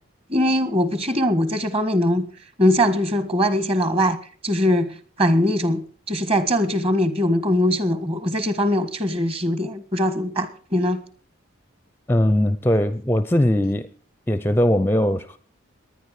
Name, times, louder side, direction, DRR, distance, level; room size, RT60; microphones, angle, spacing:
voice 1, 0.3-2.3 2.6-4.2 4.4-11.0, equal, 25° right, 1.6 m, -21 dB
voice 2, 12.1-13.9 14.3-15.4, left 1 dB, 10° left, 0.6 m, -20 dB
19.0 x 10.5 x 4.9 m
head